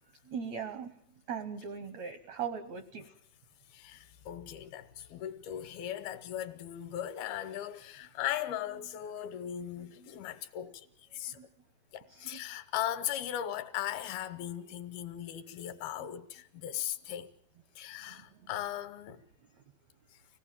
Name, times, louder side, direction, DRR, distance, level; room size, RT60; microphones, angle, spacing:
voice 1, 0.3-0.9 1.3-3.0 11.3-11.5 12.1-12.4 18.1-18.2, right 7 dB, 80° right, 1.6 m, -39 dB
voice 2, 3.7-10.9 11.1-11.4 11.9-17.3 17.8-19.2, left 11 dB, 80° left, 2.8 m, -38 dB
25.0 x 18.0 x 7.4 m
omnidirectional pair, 4.5 m